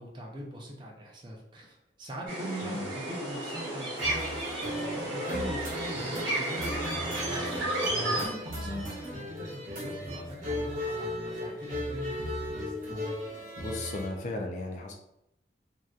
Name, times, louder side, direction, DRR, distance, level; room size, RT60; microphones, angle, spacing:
voice 1, 0.0-12.2, equal, 25° right, -1 dB, 0.4 m, -41 dB
sound 1, 2.3-8.3, right 1 dB, 85° right, 1.1 m, -33 dB
sound 2, 4.0-14.1, left 1 dB, 45° right, 0.8 m, -36 dB
voice 2, 13.6-15.0, left 2 dB, 40° left, 2 dB, 0.3 m, -35 dB
2.6 x 2.1 x 2.3 m, 0.81 s
head